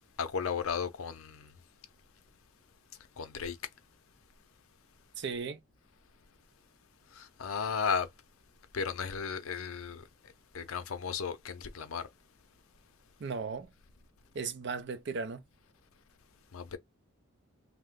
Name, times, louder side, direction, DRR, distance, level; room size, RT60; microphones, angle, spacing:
voice 1, 0.2-1.5 3.2-3.6 7.1-8.1 8.7-10.0 10.5-12.1 16.5-16.8, left 6 dB, 80° left, 0.5 m, -34 dB
voice 2, 5.2-5.6 13.2-13.7 14.3-15.4, right 5 dB, 55° right, 0.4 m, -36 dB
2.9 x 2.1 x 3.5 m
head